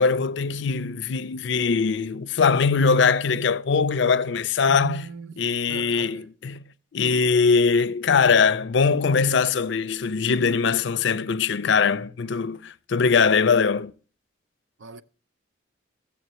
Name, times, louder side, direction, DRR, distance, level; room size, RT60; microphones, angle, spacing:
voice 1, 0.0-5.0 5.4-6.6 6.9-13.9, left 5 dB, 65° left, 0.4 m, -21 dB
voice 2, 4.7-5.4 5.7-6.3 14.8-15.0, right 5 dB, 75° right, 0.5 m, -38 dB
15.0 x 7.1 x 3.0 m
head